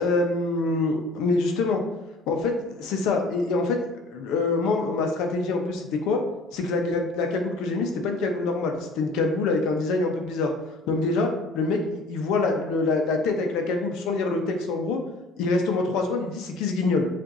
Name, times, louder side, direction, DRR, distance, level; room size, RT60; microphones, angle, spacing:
voice 1, 0.0-1.8 2.3-3.8 4.1-6.2 6.5-10.5 10.9-15.0 15.4-17.1, left 3 dB, 85° left, 3 dB, 0.7 m, -25 dB
7.4 x 2.6 x 2.6 m, 1.0 s
cardioid pair, 170°, 0 cm